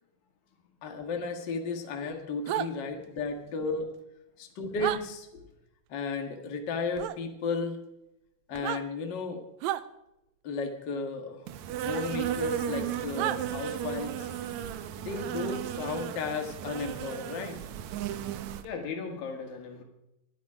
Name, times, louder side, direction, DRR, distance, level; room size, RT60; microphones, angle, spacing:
voice 1, 0.8-3.9 4.4-5.3 5.9-7.8 8.5-9.4 10.4-11.5 11.8-14.3 15.0-17.6, left 4 dB, 40° left, 3 dB, 2.0 m, -34 dB
sound 1, 2.5-2.7 4.8-5.0 7.0-7.2 8.5-8.8 9.6-9.8 11.9-12.0 13.2-13.4, right 13 dB, 90° right, 1.5 m, -31 dB
Insect, 11.5-18.7, right 10 dB, 70° right, 1.9 m, -35 dB
voice 2, 18.6-19.8, left 5 dB, 90° left, 3 dB, 3.9 m, -37 dB
21.0 x 11.5 x 5.0 m, 0.88 s
omnidirectional pair, 3.9 m